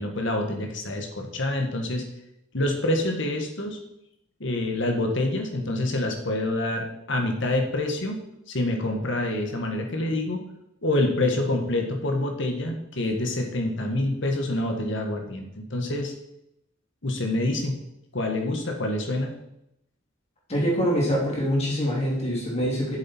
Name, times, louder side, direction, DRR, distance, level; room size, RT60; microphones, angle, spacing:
voice 1, 0.0-2.0 2.5-3.8 4.4-8.2 8.5-10.4 10.8-16.1 17.0-17.8 18.1-19.3, left 1 dB, 65° left, 3 dB, 1.7 m, -26 dB
voice 2, 20.5-23.0, equal, 30° left, -4 dB, 3.0 m, -24 dB
7.8 x 7.5 x 4.5 m, 0.81 s
head